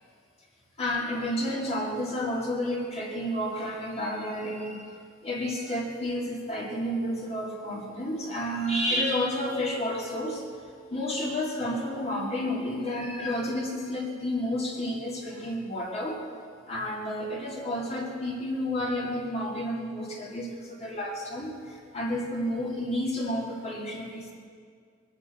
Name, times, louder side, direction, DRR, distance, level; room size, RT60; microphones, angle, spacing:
voice 1, 0.8-5.0 5.2-10.4 10.9-16.2 16.7-24.3, left 1 dB, 35° left, -2 dB, 2.3 m, -31 dB
21.5 x 8.2 x 8.1 m, 2.1 s
head